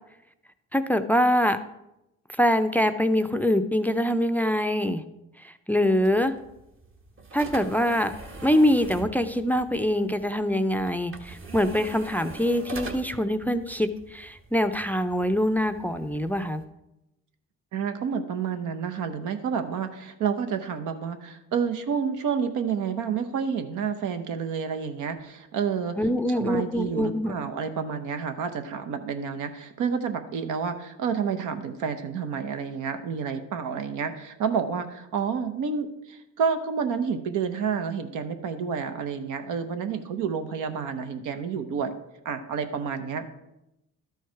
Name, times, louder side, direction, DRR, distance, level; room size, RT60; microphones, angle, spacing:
voice 1, 0.7-1.6 2.4-5.0 5.4-6.3 7.3-8.1 8.4-16.6 26.0-27.3, equal, 5° left, 10 dB, 0.4 m, -24 dB
sound 1, 5.8-16.6, right 2 dB, 45° right, 1.1 m, -43 dB
voice 2, 17.7-26.0 26.4-42.0 42.2-43.3, right 6 dB, 85° right, 8 dB, 0.9 m, -29 dB
12.0 x 4.7 x 4.6 m, 0.90 s
cardioid pair, 90°, 30 cm